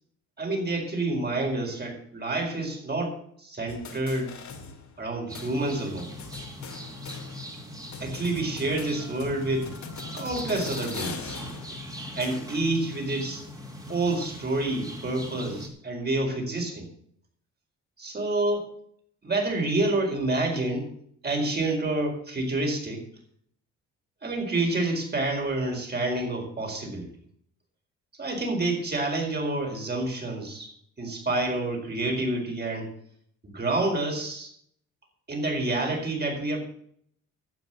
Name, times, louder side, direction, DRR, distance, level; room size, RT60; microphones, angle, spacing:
voice 1, 0.4-4.4 5.0-6.1 8.0-9.7 10.1-11.4 12.2-13.4 13.9-16.9 18.0-18.7 19.2-20.9 21.2-23.0 24.2-27.1 28.2-32.9 33.4-34.5 35.3-36.6, right 2 dB, 35° right, 2 dB, 4.6 m, -28 dB
sound 1, 3.7-5.1 5.3-5.5 6.0-7.6 7.9-12.7, left 6 dB, 70° left, 2.6 m, -42 dB
sound 2, 5.3-15.7, equal, 10° right, 2.9 m, -40 dB
12.0 x 7.8 x 7.6 m, 0.65 s
cardioid pair, 90°, 30 cm